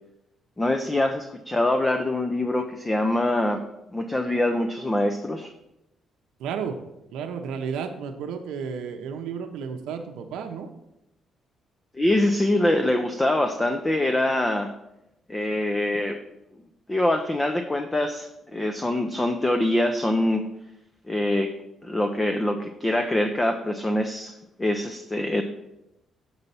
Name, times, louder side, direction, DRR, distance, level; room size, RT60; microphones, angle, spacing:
voice 1, 0.6-3.6 3.9-5.5 11.9-14.7 15.3-16.2 16.9-20.5 21.1-21.5 21.8-25.4, left 1 dB, 15° left, 6 dB, 0.5 m, -24 dB
voice 2, 6.4-6.8 7.1-10.7, right 6 dB, 90° right, 4 dB, 0.6 m, -32 dB
6.9 x 4.0 x 5.4 m, 0.89 s
cardioid pair, 90°, 0 cm